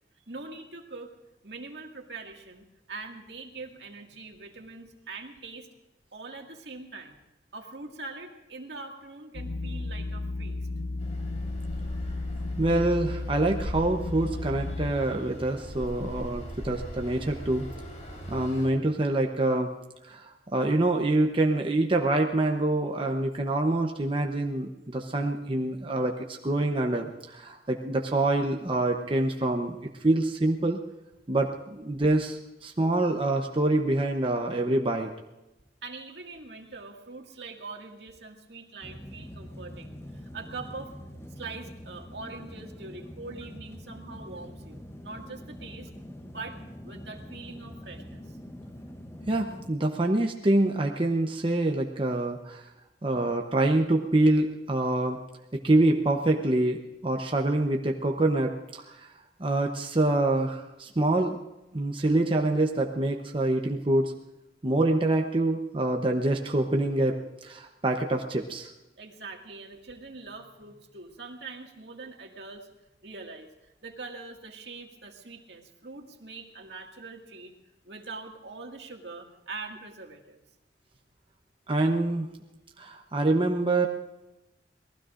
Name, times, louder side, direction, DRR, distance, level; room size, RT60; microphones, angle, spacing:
voice 1, 0.3-1.1 1.4-5.7 6.1-7.2 7.5-10.7 35.8-40.9 41.4-45.9 46.3-46.6 46.8-48.4 69.0-72.7 73.0-77.5 77.8-80.4, right 3 dB, 75° right, 2 dB, 2.1 m, -43 dB
sound 1, 9.3-14.9, left 2 dB, 75° left, 0.5 m, -33 dB
sound 2, 11.0-18.7, equal, 45° left, 4.0 m, -40 dB
voice 2, 12.6-17.7 18.3-19.7 20.0-30.8 31.3-35.1 49.3-52.6 53.0-55.2 55.5-59.1 59.4-61.4 61.7-64.1 64.6-68.7 81.7-82.3 82.8-83.9, right 2 dB, 30° right, 2 dB, 0.8 m, -26 dB
sound 3, 38.8-49.7, equal, 15° left, 0.8 m, -44 dB
27.5 x 19.5 x 2.5 m, 0.98 s
head